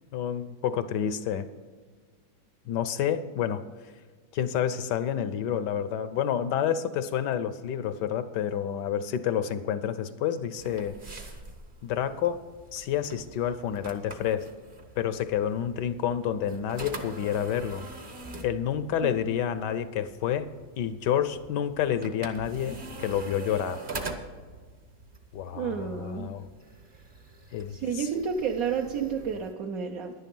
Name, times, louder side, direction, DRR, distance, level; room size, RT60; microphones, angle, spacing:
voice 1, 0.1-1.5 2.7-3.6 4.3-11.0 11.8-12.4 12.7-14.5 15.0-17.9 18.4-20.5 20.8-23.8 25.3-26.5 27.5-28.1, left 9 dB, 70° left, 13 dB, 1.1 m, -29 dB
sound 1, 10.6-29.5, right 3 dB, 35° right, 0.9 m, -44 dB
voice 2, 25.5-26.3 27.7-30.1, right 6 dB, 60° right, 2 dB, 1.0 m, -30 dB
11.0 x 10.5 x 5.3 m, 1.5 s
omnidirectional pair, 2.2 m